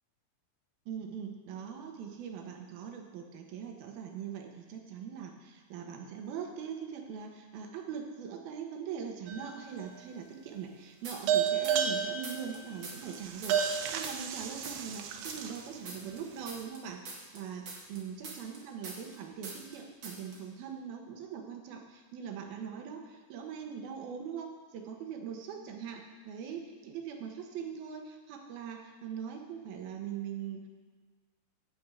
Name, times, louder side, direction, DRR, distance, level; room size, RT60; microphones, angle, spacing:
voice 1, 0.9-30.7, right 7 dB, 70° right, 3 dB, 2.6 m, -42 dB
sound 1, 9.3-9.9 11.3-15.7, right 7 dB, 90° right, 3.1 m, -32 dB
sound 2, 11.0-12.0 12.2-15.0 15.2-19.2 19.4-19.8 20.0-20.4, right 3 dB, 55° right, 1.3 m, -44 dB
11.5 x 5.2 x 8.3 m, 1.4 s
omnidirectional pair, 5.0 m